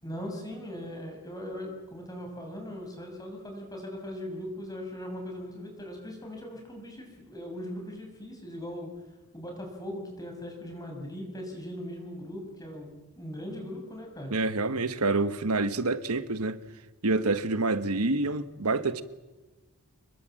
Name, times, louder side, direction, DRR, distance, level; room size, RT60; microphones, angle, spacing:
voice 1, 0.0-8.9 9.3-14.3, equal, 15° left, 6.3 m, -39 dB
voice 2, 14.3-16.6 17.0-19.0, right 3 dB, 80° right, 1.3 m, -27 dB
29.0 x 21.0 x 7.8 m
head